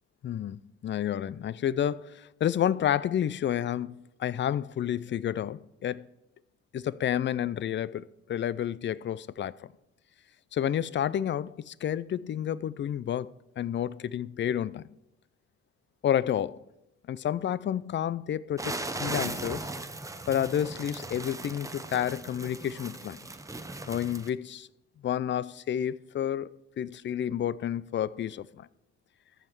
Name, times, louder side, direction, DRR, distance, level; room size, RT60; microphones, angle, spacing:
voice 1, 0.2-6.1 6.7-9.7 10.5-14.8 16.0-16.6 17.1-19.7 20.3-23.2 23.9-24.7 25.0-26.5 26.8-28.7, left 10 dB, 40° left, 0.4 m, -30 dB
sound 1, 18.6-24.3, right 2 dB, 10° right, 0.7 m, -38 dB
14.5 x 5.7 x 4.7 m
cardioid pair, 90°, 30 cm